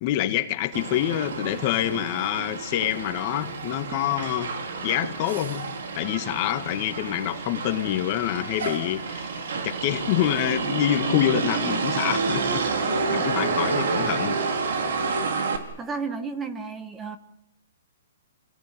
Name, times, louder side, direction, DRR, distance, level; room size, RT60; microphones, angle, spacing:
voice 1, 0.0-4.5 4.8-5.6 6.0-12.7 13.1-14.4, left 13 dB, 35° left, 9 dB, 1.8 m, -26 dB
Motor vehicle (road), 0.7-15.6, right 4 dB, 70° right, 4.8 m, -29 dB
voice 2, 15.8-17.2, right 5 dB, 10° right, 9 dB, 1.6 m, -32 dB
29.0 x 17.5 x 9.2 m, 0.79 s
hypercardioid pair, 155°, 0 cm